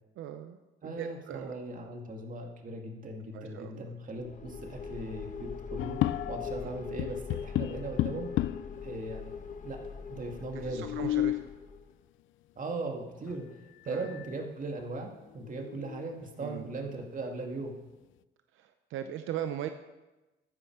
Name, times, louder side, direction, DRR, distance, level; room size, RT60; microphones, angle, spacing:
voice 1, 0.2-0.6 0.8-1.5 3.3-3.9 6.6-6.7 10.6-11.4 13.9-14.1 16.4-16.7 18.5-19.7, right 10 dB, 85° right, 8 dB, 0.7 m, -39 dB
voice 2, 0.8-6.0 6.3-8.3 8.8-9.4 9.6-9.8 10.1-10.9 12.6-13.5 13.8-17.8, right 2 dB, 40° right, 2 dB, 2.4 m, -38 dB
sound 1, 4.2-11.9, left 6 dB, 40° left, 1.3 m, -42 dB
sound 2, 5.8-6.6 7.0-8.8 9.5-9.6 9.8-9.9 10.6-11.5 13.3-13.4 13.9-14.4 14.8-14.9 15.4-16.3, left 14 dB, 80° left, 0.5 m, -33 dB
13.5 x 10.0 x 4.8 m, 1.1 s
cardioid pair, 90°, 20 cm